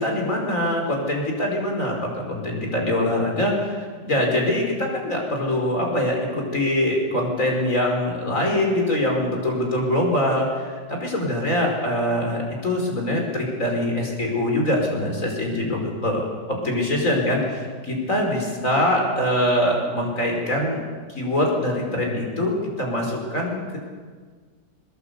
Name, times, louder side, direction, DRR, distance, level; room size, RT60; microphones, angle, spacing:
voice 1, 0.0-20.8 21.2-23.8, left 1 dB, 45° left, 1 dB, 5.6 m, -23 dB
21.5 x 21.0 x 8.3 m, 1.6 s
omnidirectional pair, 1.9 m